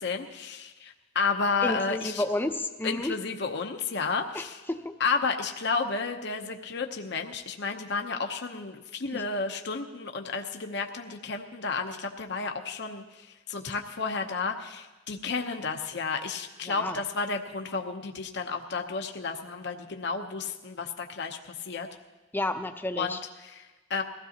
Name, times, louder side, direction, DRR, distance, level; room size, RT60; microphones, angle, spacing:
voice 1, 0.0-2.2 2.8-4.6 5.0-21.9 23.0-24.0, left 4 dB, 65° left, 4 dB, 0.9 m, -32 dB
voice 2, 1.6-3.1 4.3-4.9 16.7-17.0 22.3-23.2, left 1 dB, 10° left, 7 dB, 0.7 m, -31 dB
22.0 x 15.5 x 2.9 m, 1.2 s
head